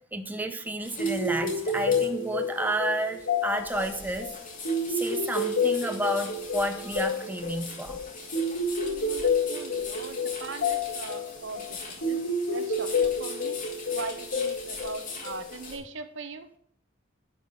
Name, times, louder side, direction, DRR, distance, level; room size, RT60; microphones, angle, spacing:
voice 1, 0.1-4.3 4.9-8.0, right 1 dB, 10° right, 7 dB, 0.6 m, -31 dB
sound 1, 0.8-15.8, left 4 dB, 45° left, 2.4 m, -42 dB
sound 2, 1.0-15.8, left 3 dB, 70° left, 1.9 m, -29 dB
voice 2, 8.8-11.8 12.0-12.2 12.5-13.6 13.9-16.5, right 4 dB, 70° right, 10 dB, 0.8 m, -40 dB
10.0 x 4.9 x 5.4 m, 0.65 s
head